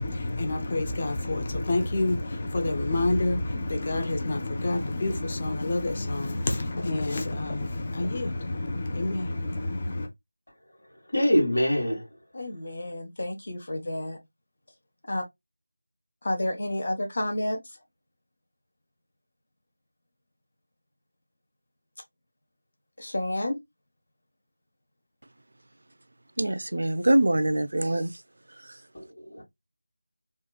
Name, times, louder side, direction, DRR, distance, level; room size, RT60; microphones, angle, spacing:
voice 1, 0.0-10.1, left 2 dB, 25° left, 0.4 m, -28 dB
voice 2, 11.1-12.0 28.9-29.0 29.3-29.4, equal, 75° left, 1.3 m, -23 dB
voice 3, 12.3-14.2 15.1-15.2 16.2-17.6 23.0-23.6, left 1 dB, 45° left, 0.8 m, -30 dB
voice 4, 26.4-28.1, right 1 dB, 65° right, 0.3 m, -24 dB
2.8 x 2.3 x 2.3 m
figure-of-eight pair, 175°, 0 cm